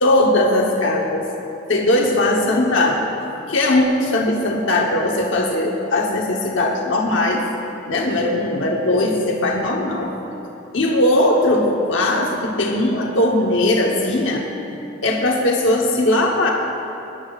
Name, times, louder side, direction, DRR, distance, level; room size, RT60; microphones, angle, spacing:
voice 1, 0.0-1.3 1.7-3.0 3.5-7.4 7.9-10.1 10.7-14.4 15.0-16.5, left 1 dB, 90° left, 0 dB, 1.0 m, -19 dB
18.5 x 11.0 x 2.4 m, 2.9 s
head